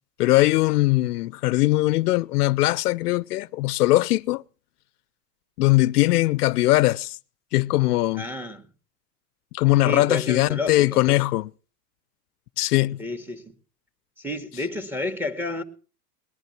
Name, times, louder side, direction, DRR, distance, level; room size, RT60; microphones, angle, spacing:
voice 1, 0.2-4.4 5.6-7.2 7.5-8.3 9.5-11.5 12.6-13.0, left 18 dB, 75° left, 0.6 m, -20 dB
voice 2, 8.1-8.6 9.8-11.2 13.0-13.5 14.2-15.6, left 2 dB, 5° right, 2.1 m, -31 dB
20.5 x 10.5 x 6.0 m
hypercardioid pair, 120°, 47 cm